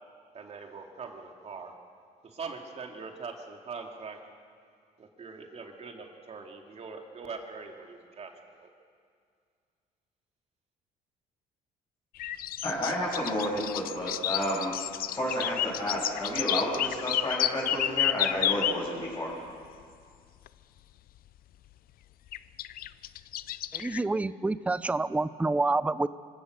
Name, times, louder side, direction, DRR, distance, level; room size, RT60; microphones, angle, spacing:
voice 1, 0.3-1.7 2.2-4.2 5.0-8.7, right 4 dB, 40° right, 2 dB, 2.8 m, -42 dB
sound 1, 12.2-18.8 20.5-20.6 22.3-24.0, left 13 dB, 60° left, 0.5 m, -30 dB
voice 2, 12.6-14.7 15.1-19.3, equal, 20° left, -8 dB, 7.3 m, -31 dB
voice 3, 23.7-26.1, right 3 dB, 10° right, 16 dB, 0.5 m, -28 dB
25.5 x 16.5 x 6.7 m, 2.2 s
cardioid pair, 110°, 17 cm